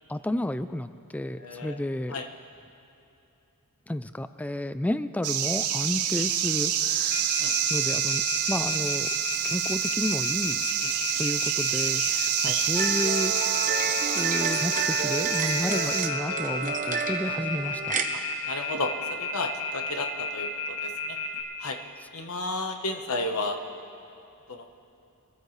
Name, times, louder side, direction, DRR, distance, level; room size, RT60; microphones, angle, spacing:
voice 1, 0.1-2.2 3.9-7.4 7.7-9.1 9.4-10.7 11.2-13.6 14.1-18.0, left 1 dB, 5° left, 12 dB, 0.3 m, -31 dB
voice 2, 1.4-1.8 2.1-2.3 7.4-7.5 12.4-12.6 18.5-21.2 21.6-21.8 22.1-23.6 24.5-24.7, left 2 dB, 70° left, 5 dB, 1.1 m, -32 dB
sound 1, 5.2-16.1, right 9 dB, 75° right, 0.8 m, -27 dB
Telephone, 7.1-21.4, left 4 dB, 90° left, 2.0 m, -32 dB
sound 2, 12.7-18.1, right 4 dB, 35° right, 0.9 m, -30 dB
24.5 x 13.5 x 3.2 m, 2.9 s
head